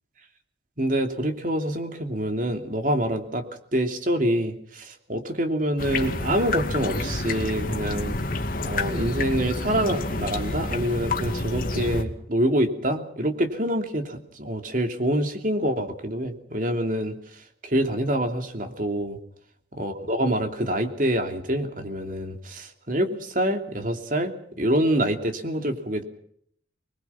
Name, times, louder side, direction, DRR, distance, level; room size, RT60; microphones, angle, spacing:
voice 1, 0.8-3.5 3.7-8.2 8.6-17.2 17.6-19.2 19.7-26.0, right 1 dB, 45° right, 6 dB, 2.9 m, -26 dB
sound 1, 5.8-12.0, left 2 dB, 50° left, 2.3 m, -28 dB
25.0 x 21.5 x 5.9 m, 0.66 s
head